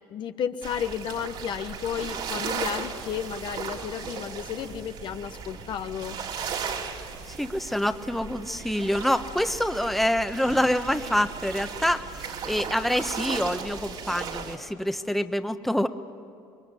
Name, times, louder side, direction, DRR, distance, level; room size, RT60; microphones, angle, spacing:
voice 1, 0.1-6.2, left 8 dB, 60° left, 9 dB, 1.1 m, -32 dB
sound 1, 0.6-14.6, right 6 dB, 70° right, 3.4 m, -36 dB
voice 2, 7.3-15.9, equal, ahead, 8 dB, 1.2 m, -26 dB
27.0 x 22.5 x 9.9 m, 2.6 s
supercardioid pair, 80°, 9 cm